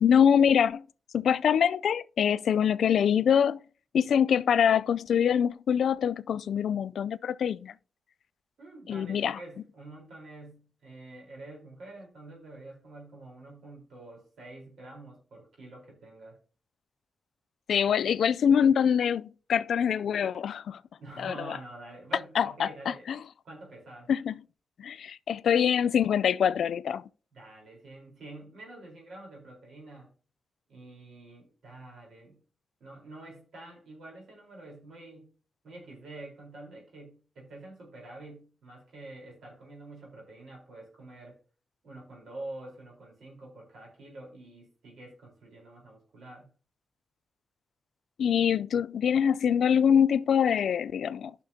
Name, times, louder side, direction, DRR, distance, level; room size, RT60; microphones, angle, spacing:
voice 1, 0.0-0.9 1.1-3.6 3.9-7.7 8.9-9.4 17.7-20.8 21.2-21.6 22.4-23.2 24.1-24.3 24.8-27.0 48.2-51.3, left 8 dB, 85° left, 0.3 m, -24 dB
voice 2, 8.6-16.4 21.0-23.0 23.4-24.1 27.3-30.1 30.7-32.4 32.8-35.3 35.6-41.4 41.8-46.5, right 2 dB, 90° right, 3.8 m, -47 dB
14.0 x 5.8 x 2.7 m
wide cardioid pair, 110°, 0 cm